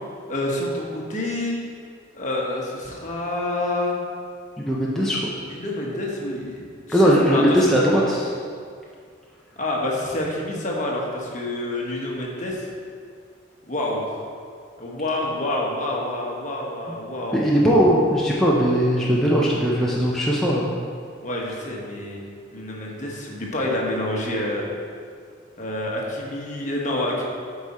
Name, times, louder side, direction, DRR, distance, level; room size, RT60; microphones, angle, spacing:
voice 1, 0.3-1.6 2.1-3.9 5.5-7.9 9.6-12.7 13.7-14.1 14.8-17.5 21.2-22.2 22.5-24.7 25.6-27.2, left 1 dB, 40° left, -2 dB, 1.2 m, -28 dB
voice 2, 4.6-5.2 6.9-8.4 17.3-20.7, equal, ahead, -6 dB, 0.6 m, -19 dB
8.3 x 4.9 x 4.2 m, 2.2 s
head